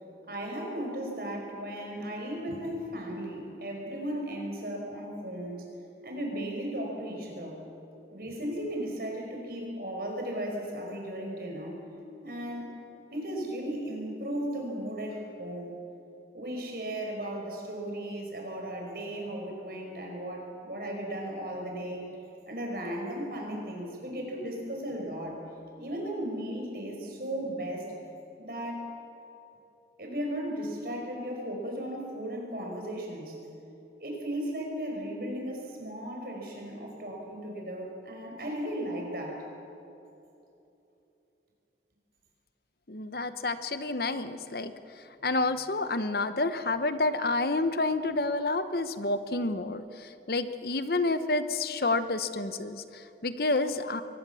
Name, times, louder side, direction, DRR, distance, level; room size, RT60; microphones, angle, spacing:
voice 1, 0.3-5.7 6.0-7.6 8.1-11.8 12.2-12.7 13.1-15.7 16.3-22.0 22.5-25.4 25.8-27.9 28.4-28.9 30.0-33.4 34.0-39.5, right 1 dB, 55° right, 1 dB, 5.3 m, -36 dB
voice 2, 42.9-54.0, left 2 dB, 60° left, 11 dB, 1.0 m, -29 dB
23.0 x 19.5 x 7.0 m, 2.8 s
head